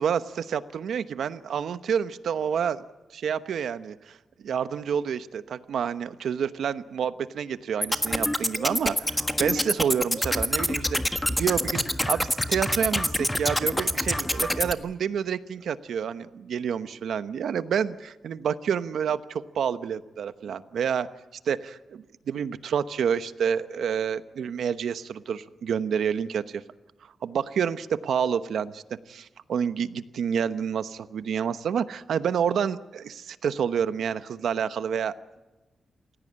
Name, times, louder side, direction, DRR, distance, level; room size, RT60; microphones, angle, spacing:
voice 1, 0.0-2.8 3.1-21.1 21.4-26.6 27.2-28.8 29.1-35.1, right 7 dB, 80° right, 12 dB, 1.0 m, -28 dB
sound 1, 7.8-14.7, left 1 dB, 5° left, 1.4 m, -26 dB
28.0 x 16.5 x 8.8 m, 1.1 s
wide cardioid pair, 125°, 0 cm